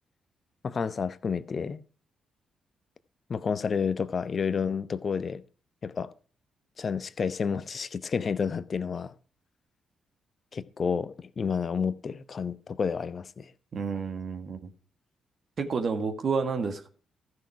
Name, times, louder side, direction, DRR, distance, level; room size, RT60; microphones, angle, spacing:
voice 1, 0.6-1.8 3.3-5.4 5.8-6.1 6.8-9.1 10.5-13.5, left 6 dB, 50° left, 0.9 m, -30 dB
voice 2, 13.7-14.7 15.6-16.9, right 5 dB, 55° right, 1.5 m, -30 dB
14.5 x 6.3 x 4.7 m
hypercardioid pair, 40°, 0 cm